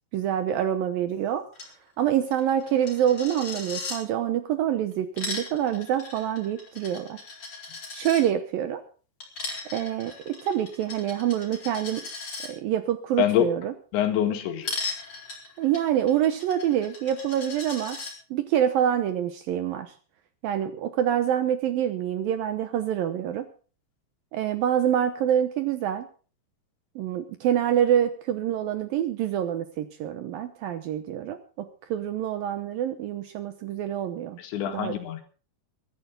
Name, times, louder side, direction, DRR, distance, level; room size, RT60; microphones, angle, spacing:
voice 1, 0.1-1.5 2.0-7.2 7.9-8.8 9.7-12.1 12.4-13.7 15.6-18.0 18.3-19.9 20.4-23.5 24.3-26.1 27.0-34.4 34.7-35.0, right 10 dB, 75° right, 9 dB, 2.2 m, -26 dB
Coin (dropping), 1.5-1.7 2.0-2.1 2.3-4.0 4.9-8.2 9.2-12.5 14.6-18.1, left 3 dB, 30° left, 4.7 m, -37 dB
voice 2, 13.2-13.5 13.9-14.7 34.4-35.2, left 11 dB, 85° left, 6 dB, 4.2 m, -25 dB
22.5 x 11.5 x 3.8 m, 0.39 s
omnidirectional pair, 5.1 m